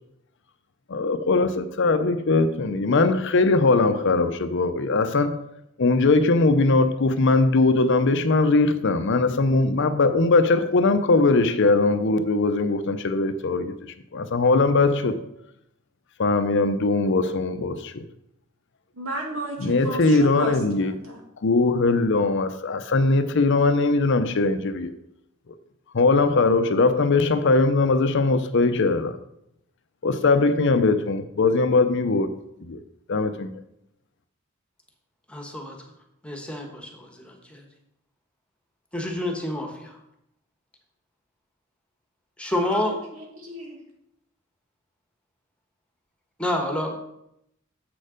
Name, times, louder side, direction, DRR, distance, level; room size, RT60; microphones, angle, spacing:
voice 1, 0.9-5.5 5.8-15.3 16.2-18.0 19.6-20.9 21.4-24.9 25.9-29.2 30.0-32.3 32.6-32.8 33.1-33.5, left 3 dB, 60° left, 0.6 m, -20 dB
voice 2, 19.0-21.2 42.5-43.8, right 1 dB, 75° right, 2.3 m, -34 dB
voice 3, 35.3-35.8 36.2-37.6 38.9-40.0 42.4-42.9 46.4-46.9, left 1 dB, 5° left, 1.3 m, -28 dB
7.7 x 6.5 x 5.1 m
head